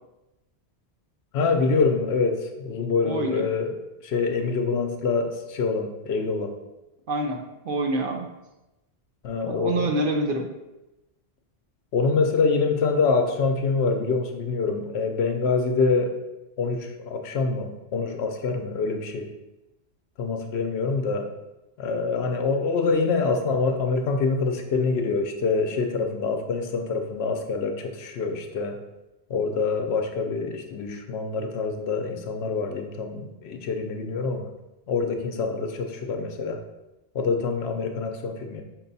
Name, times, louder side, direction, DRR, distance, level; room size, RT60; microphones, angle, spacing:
voice 1, 1.3-3.7 4.0-6.5 9.2-9.9 11.9-16.1 16.6-19.3 20.2-21.3 21.8-28.8 29.3-34.5 34.9-36.6 37.1-38.6, left 4 dB, 75° left, 4 dB, 0.9 m, -25 dB
voice 2, 3.0-3.5 7.1-8.3 9.5-10.5, right 2 dB, 60° right, 3 dB, 0.7 m, -27 dB
5.9 x 2.2 x 4.0 m, 0.99 s
omnidirectional pair, 1.1 m